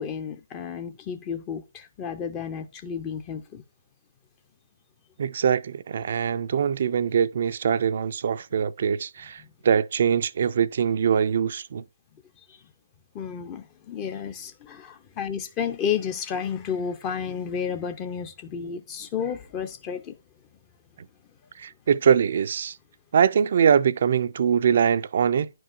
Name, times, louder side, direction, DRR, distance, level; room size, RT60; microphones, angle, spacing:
voice 1, 0.0-3.6 12.5-12.6 13.1-20.2, left 7 dB, 20° left, 0.5 m, -32 dB
voice 2, 5.2-11.8 21.6-22.8 23.1-25.5, right 7 dB, 45° right, 0.4 m, -23 dB
10.5 x 4.6 x 2.5 m
figure-of-eight pair, 140°, 0 cm